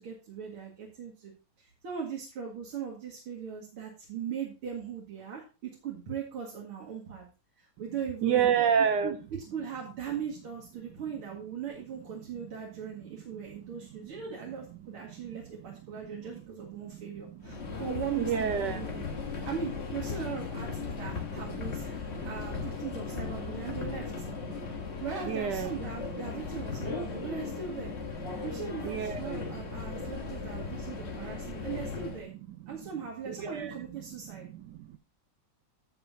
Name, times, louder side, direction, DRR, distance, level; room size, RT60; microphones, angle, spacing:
voice 1, 0.0-1.3 1.6-7.2 7.6-8.5 8.8-9.2 9.5-19.0 19.4-24.3 25.0-27.9 28.4-32.3 32.7-34.5, right 7 dB, 85° right, -2 dB, 2.8 m, -39 dB
voice 2, 8.2-9.1 13.6-13.8 15.2-15.4 16.0-16.2 16.8-17.8 18.2-19.5 21.5-21.6 22.1-22.3 24.5-24.8 25.2-25.7 27.0-27.1 28.3-28.4 28.8-29.6 29.9-30.2 30.7-30.9 31.2-31.7 32.6-32.9 33.3-33.8 34.3-35.0, right 8 dB, 70° right, 9 dB, 1.1 m, -32 dB
Subway metro underground, 17.4-32.2, left 5 dB, 35° left, 1.3 m, -37 dB
10.0 x 7.5 x 2.7 m, 0.30 s
omnidirectional pair, 2.3 m